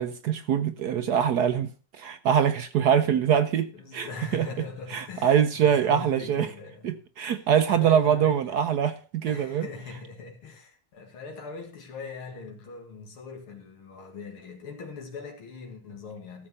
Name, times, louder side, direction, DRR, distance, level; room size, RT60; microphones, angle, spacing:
voice 1, 0.0-1.7 2.0-4.1 4.3-4.5 4.9-6.5 6.8-9.7, right 8 dB, 65° right, 1.0 m, -23 dB
voice 2, 3.7-7.0 7.3-8.6 9.2-16.5, left 4 dB, 90° left, 2.9 m, -41 dB
13.5 x 7.2 x 5.4 m
omnidirectional pair, 2.3 m